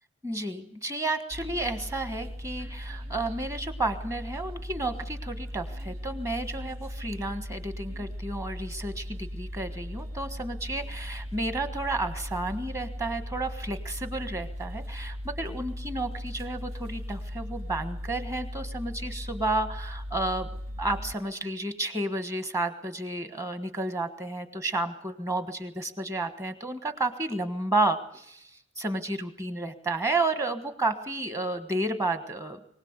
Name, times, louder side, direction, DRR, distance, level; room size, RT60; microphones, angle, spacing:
voice 1, 0.2-20.5 20.8-32.6, right 2 dB, 15° right, 10 dB, 1.5 m, -31 dB
sound 1, 1.3-21.1, equal, 75° right, 2.8 m, -38 dB
24.0 x 17.5 x 8.1 m, 0.72 s
head